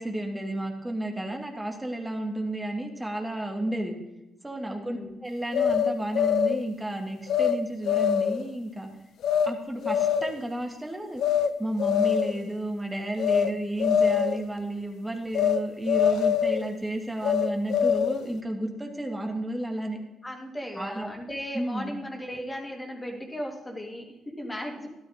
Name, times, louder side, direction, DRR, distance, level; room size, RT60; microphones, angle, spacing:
voice 1, 0.0-3.9 4.4-8.9 9.4-11.2 11.6-20.0 20.8-21.1 21.5-21.9, right 1 dB, 10° right, 2 dB, 2.2 m, -32 dB
voice 2, 4.6-5.2 20.2-24.9, equal, 15° left, 0 dB, 2.8 m, -36 dB
sound 1, 5.5-6.6 7.3-7.6 7.9-8.5 9.2-9.5 9.8-10.4 11.2-11.5 11.8-12.4 13.2-13.5 13.8-14.4 15.3-15.6 15.9-16.7 17.2-18.3, left 8 dB, 70° left, 0.6 m, -24 dB
13.5 x 12.0 x 3.7 m, 1.0 s
cardioid pair, 90°, 0 cm